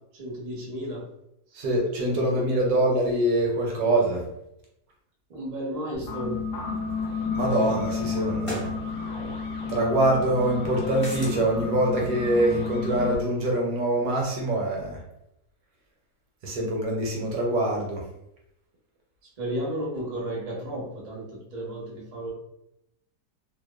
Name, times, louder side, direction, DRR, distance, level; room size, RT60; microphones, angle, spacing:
voice 1, 0.1-1.0 2.1-2.8 5.3-6.4 19.4-22.3, right 1 dB, 50° right, -5 dB, 0.4 m, -33 dB
voice 2, 1.6-4.2 7.3-8.7 9.7-15.0 16.4-18.0, right 1 dB, 70° right, -1 dB, 1.0 m, -24 dB
sound 1, 5.9-13.2, left 4 dB, 65° left, 0.8 m, -31 dB
sound 2, 7.0-7.1 8.4-8.7 11.0-11.4, equal, 35° left, 0.5 m, -34 dB
2.8 x 2.1 x 2.2 m, 0.82 s
omnidirectional pair, 1.8 m